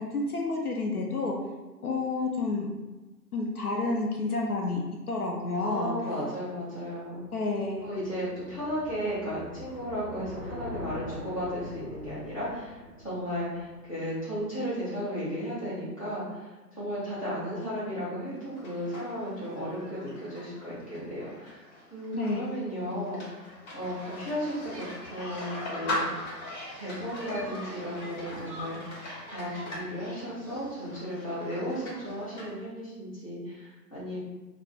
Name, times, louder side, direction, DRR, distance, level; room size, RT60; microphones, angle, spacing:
voice 1, 0.0-1.4 1.8-2.7 3.3-5.9 7.3-7.9 22.1-22.5, left 3 dB, 65° left, 0 dB, 0.6 m, -30 dB
voice 2, 5.6-7.2 7.8-12.8 13.0-21.6 21.9-26.3 26.8-34.2, equal, 20° left, -12 dB, 0.6 m, -35 dB
sound 1, 7.0-14.2, left 1 dB, 30° right, 0.6 m, -44 dB
sound 2, 18.3-32.5, left 1 dB, 45° left, 1.3 m, -40 dB
3.3 x 2.4 x 2.4 m, 1.2 s
figure-of-eight pair, 155°, 50 cm